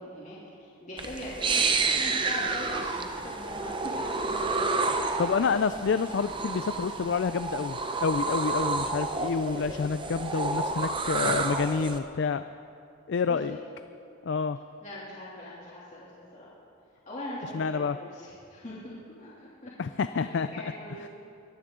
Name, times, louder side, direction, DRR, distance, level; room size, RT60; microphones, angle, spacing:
voice 1, 0.0-4.7 13.3-13.6 14.8-16.5 17.1-19.7 20.1-21.1, left 1 dB, 35° left, -8 dB, 2.9 m, -41 dB
sound 1, 1.0-12.0, right 3 dB, 25° right, 0.6 m, -30 dB
voice 2, 5.2-12.4 13.1-13.6 14.2-14.6 17.5-18.0 19.8-20.5, left 5 dB, 55° left, 11 dB, 0.3 m, -28 dB
22.5 x 14.0 x 3.8 m, 2.5 s
head